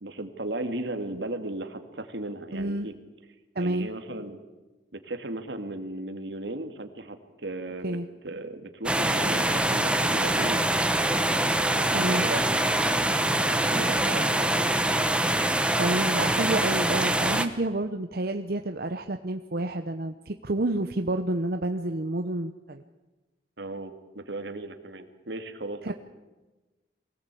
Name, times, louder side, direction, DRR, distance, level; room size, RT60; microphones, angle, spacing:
voice 1, 0.0-2.9 3.6-4.4 4.9-8.0 8.2-10.7 11.7-12.5 13.3-14.7 23.6-25.9, right 2 dB, 80° right, 7 dB, 2.3 m, -36 dB
voice 2, 2.5-2.9 3.5-3.9 7.8-8.1 11.9-12.3 15.8-22.8 25.8-25.9, right 2 dB, 60° right, 7 dB, 0.9 m, -29 dB
sound 1, 8.9-17.5, right 1 dB, 5° right, 1.1 m, -24 dB
24.0 x 18.0 x 8.4 m, 1.2 s
head